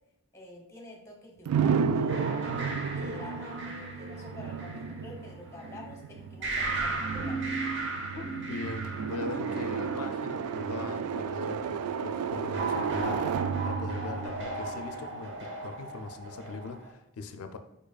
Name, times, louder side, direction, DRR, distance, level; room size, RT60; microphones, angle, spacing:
voice 1, 0.3-2.6 2.9-7.4, left 2 dB, 15° left, 0 dB, 0.7 m, -48 dB
sound 1, 1.5-15.3, right 6 dB, 80° right, 0.3 m, -33 dB
sound 2, 2.1-5.7 6.4-10.9 12.5-16.9, right 3 dB, 55° right, 0.8 m, -36 dB
voice 2, 8.1-17.6, left 4 dB, 80° left, 7 dB, 0.4 m, -40 dB
5.0 x 4.4 x 2.3 m, 0.92 s
head